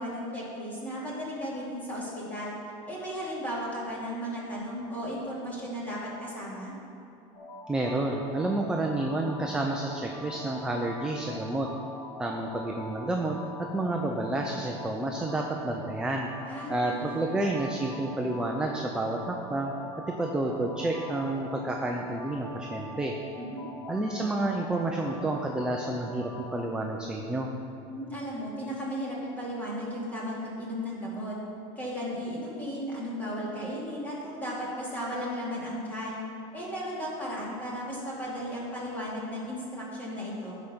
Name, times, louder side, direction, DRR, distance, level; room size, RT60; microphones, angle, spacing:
voice 1, 0.0-2.6 2.9-6.7 16.5-17.3 23.4-23.6 27.9-31.3 31.8-36.2 36.5-40.6, equal, 10° left, -6 dB, 2.6 m, -35 dB
sound 1, 7.3-26.6, left 2 dB, 40° left, 1.5 m, -43 dB
voice 2, 7.7-11.7 12.2-16.3 16.7-19.7 20.2-23.1 23.9-27.5, right 2 dB, 5° right, 1 dB, 0.5 m, -30 dB
15.0 x 5.1 x 6.1 m, 2.6 s
cardioid pair, 165°, 16 cm